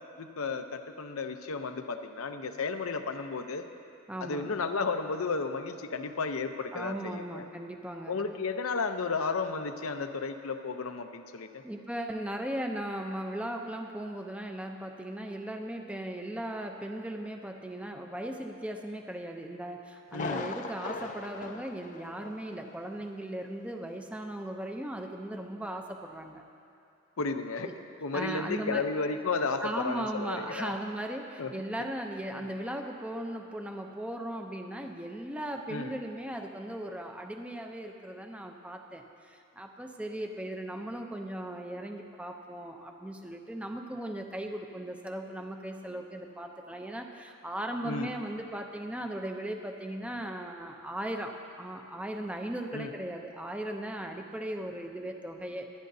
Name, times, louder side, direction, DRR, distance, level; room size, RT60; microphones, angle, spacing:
voice 1, 0.2-3.6 4.2-7.5 8.1-11.6 20.1-20.5 27.2-27.7 28.0-30.7 31.4-31.5 32.4-32.5 35.7-35.9 47.8-48.1 52.7-52.9, left 4 dB, 85° left, 7 dB, 0.7 m, -33 dB
voice 2, 4.1-4.5 6.7-8.2 11.6-26.4 27.6-27.8 28.1-28.9 29.6-55.7, right 1 dB, 5° right, 3 dB, 0.6 m, -37 dB
Thunder, 20.1-22.7 23.0-23.1 23.6-23.7, left 3 dB, 35° left, 0.5 m, -39 dB
25.5 x 10.5 x 2.7 m, 2.7 s
head